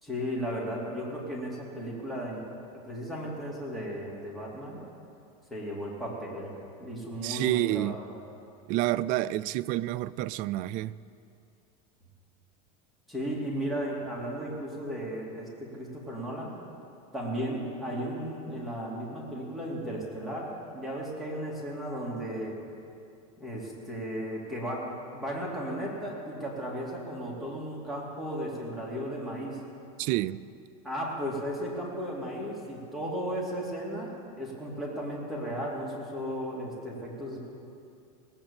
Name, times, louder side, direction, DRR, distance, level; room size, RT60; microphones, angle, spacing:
voice 1, 0.0-4.8 5.5-6.5 6.8-7.9 13.1-16.5 17.1-20.5 20.7-22.5 23.4-24.8 25.1-29.6 30.8-37.5, equal, ahead, 2.8 m, -35 dB
voice 2, 7.2-8.0 8.7-11.0 30.0-30.4, right 16 dB, 45° right, 0.4 m, -29 dB
18.5 x 8.6 x 7.2 m
supercardioid pair, 135°, 19 cm